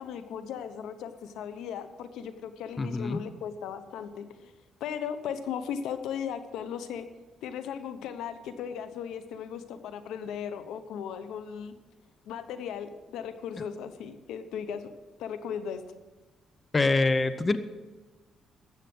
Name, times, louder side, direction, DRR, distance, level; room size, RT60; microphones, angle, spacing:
voice 1, 0.0-4.5 4.8-7.1 7.4-11.7 12.2-14.9 15.2-15.8, left 8 dB, 85° left, 11 dB, 0.9 m, -37 dB
voice 2, 2.8-3.2 16.7-17.6, left 3 dB, 30° left, 12 dB, 0.7 m, -25 dB
13.5 x 8.3 x 6.2 m, 1.2 s
cardioid pair, 90°, 0 cm